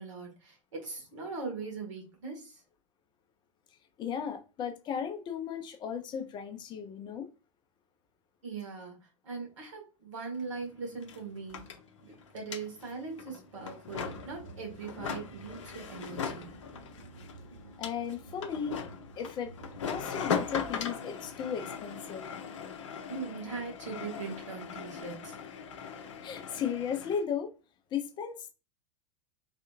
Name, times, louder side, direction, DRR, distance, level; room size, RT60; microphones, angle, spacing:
voice 1, 0.0-2.6 8.4-9.0 9.2-16.5 23.1-25.4, right 4 dB, 65° right, 1.5 m, -41 dB
voice 2, 4.0-7.3 17.8-18.8 19.2-19.5 19.8-22.3 26.2-27.5 27.9-28.5, left 7 dB, 25° left, 0.5 m, -35 dB
sound 1, 10.3-10.4 10.6-27.2, left 6 dB, 65° left, 0.6 m, -40 dB
sound 2, 14.0-19.9, right 3 dB, 90° right, 0.8 m, -52 dB
3.3 x 2.7 x 2.4 m
figure-of-eight pair, 90°, 17 cm